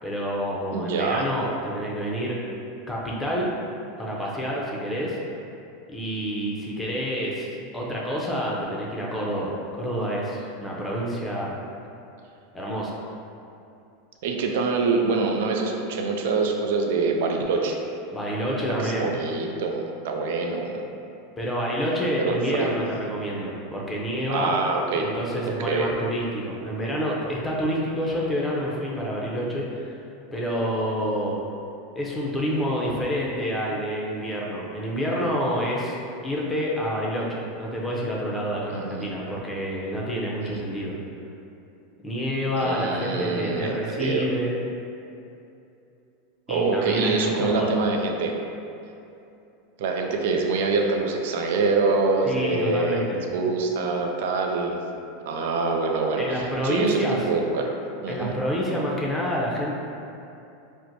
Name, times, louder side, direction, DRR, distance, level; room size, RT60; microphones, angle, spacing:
voice 1, 0.0-2.4 2.9-3.5 4.0-5.2 5.9-11.6 12.5-13.0 18.1-19.1 21.4-24.6 25.0-29.9 30.3-31.4 32.0-36.0 36.2-41.0 42.0-44.6 46.5-47.7 52.2-53.2 56.2-57.2 58.1-59.7, equal, 10° left, -4 dB, 0.6 m, -28 dB
voice 2, 0.7-1.3 14.2-17.8 18.8-20.9 22.2-22.8 24.3-25.1 25.4-25.9 38.7-39.1 40.4-40.6 42.6-44.3 46.5-48.3 49.8-54.8 55.2-57.7 58.0-58.3, right 4 dB, 75° right, 2 dB, 0.4 m, -25 dB
4.3 x 2.1 x 2.6 m, 2.7 s
supercardioid pair, 125°, 0 cm